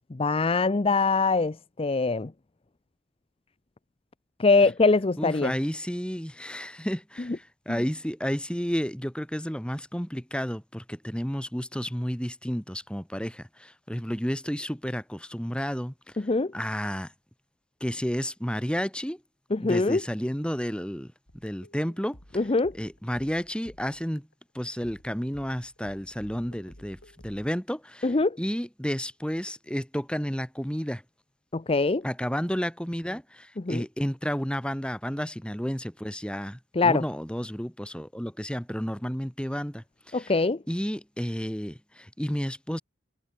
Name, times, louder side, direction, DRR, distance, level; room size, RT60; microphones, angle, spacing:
voice 1, 0.1-2.3 4.4-5.5 16.3-16.5 19.5-20.0 22.4-22.7 28.0-28.4 31.5-32.0 33.6-33.8 36.8-37.0 40.1-40.6, left 3 dB, 30° left, 0.6 m, -23 dB
voice 2, 5.2-17.1 17.8-19.2 19.6-22.5 22.7-24.3 24.5-31.0 32.0-40.4 40.7-42.8, equal, 5° left, 2.9 m, -32 dB
sound 1, 21.3-24.4 24.8-27.5, left 1 dB, 85° left, 5.4 m, -53 dB
head